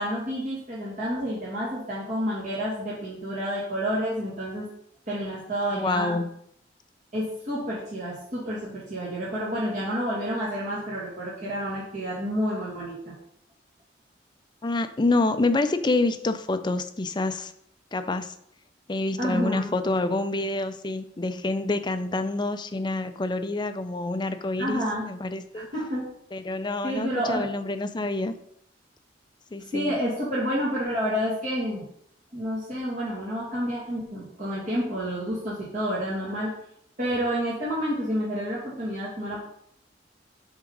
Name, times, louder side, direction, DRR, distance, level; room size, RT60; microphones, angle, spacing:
voice 1, 0.0-4.7 5.1-6.2 7.1-13.1 19.2-19.7 24.6-25.1 25.5-26.0 26.8-27.5 29.7-31.8 32.3-36.5 37.0-39.4, equal, 40° right, -7 dB, 1.9 m, -29 dB
voice 2, 5.8-6.3 14.6-17.5 17.9-18.3 18.9-25.7 26.3-28.3 29.5-30.0, left 2 dB, 25° left, 9 dB, 0.5 m, -27 dB
7.7 x 3.7 x 5.2 m, 0.69 s
head